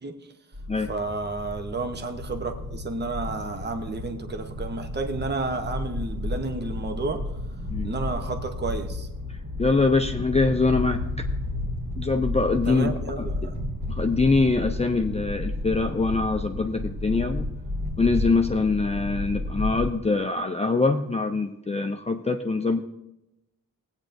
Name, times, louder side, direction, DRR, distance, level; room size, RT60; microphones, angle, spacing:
sound 1, 0.5-20.0, left 1 dB, 60° right, 2.8 m, -32 dB
voice 1, 0.9-7.4 7.8-9.1 12.6-13.6, right 3 dB, 30° right, 6 dB, 0.9 m, -31 dB
voice 2, 9.6-11.2 12.0-12.9 13.2-13.5 13.9-17.5 18.0-22.8, left 3 dB, 20° left, 5 dB, 0.5 m, -24 dB
16.5 x 8.9 x 2.6 m, 0.89 s
wide cardioid pair, 80°, 35 cm